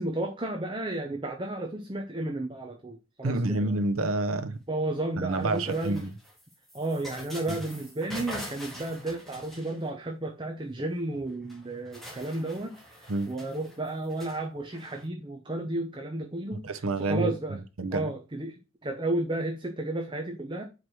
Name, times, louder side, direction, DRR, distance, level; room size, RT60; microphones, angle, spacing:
voice 1, 0.0-3.8 4.7-6.1 6.7-16.7 17.0-17.6 17.9-18.6 18.8-20.6, right 2 dB, 25° right, 0.8 m, -33 dB
voice 2, 3.2-4.6 5.2-6.1 7.5-7.6 13.1-13.3 16.6-18.1, right 2 dB, 85° right, 0.8 m, -29 dB
sound 1, 5.3-10.1 11.2-11.3 11.5-15.0, equal, ahead, 1.8 m, -44 dB
5.0 x 4.6 x 6.1 m
head